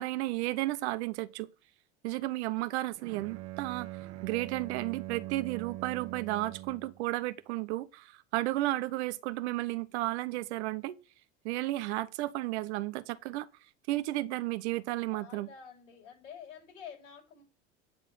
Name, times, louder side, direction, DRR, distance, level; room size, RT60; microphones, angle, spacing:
voice 1, 0.0-1.5 2.0-3.9 4.2-11.0 11.4-13.5 13.9-15.5, right 17 dB, 70° right, 1.0 m, -33 dB
Bowed string instrument, 3.0-7.0, right 16 dB, 45° right, 1.0 m, -42 dB
voice 2, 15.1-17.4, left 7 dB, 90° left, 7.4 m, -49 dB
9.5 x 4.9 x 7.6 m
hypercardioid pair, 90°, 35 cm